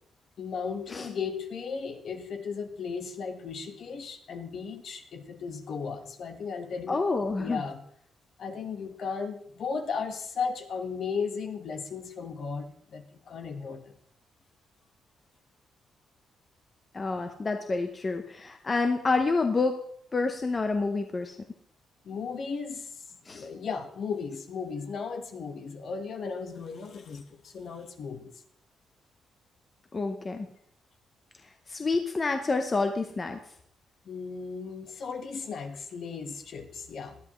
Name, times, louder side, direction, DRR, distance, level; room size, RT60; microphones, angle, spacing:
voice 1, 0.4-7.0 7.4-7.8 8.4-13.8 22.0-28.3 34.0-37.2, left 5 dB, 50° left, 6 dB, 1.4 m, -36 dB
voice 2, 6.9-7.6 16.9-19.8 20.1-21.4 23.3-23.4 29.9-30.5 31.7-33.4, left 3 dB, 25° left, 5 dB, 0.8 m, -28 dB
19.0 x 12.5 x 3.1 m, 0.67 s
cardioid pair, 170°, 0 cm